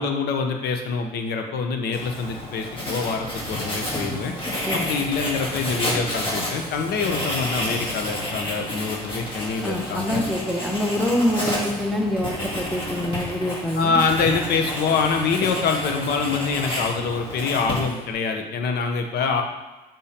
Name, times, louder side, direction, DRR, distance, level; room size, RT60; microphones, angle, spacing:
voice 1, 0.0-4.3 4.7-10.2 13.7-19.4, left 5 dB, 70° left, 4 dB, 0.8 m, -25 dB
Writing, 1.9-18.1, left 1 dB, 30° left, 1.7 m, -30 dB
voice 2, 9.6-14.0, left 1 dB, ahead, 0 dB, 0.9 m, -25 dB
6.9 x 5.3 x 2.9 m, 1.1 s
cardioid pair, 110°, 17 cm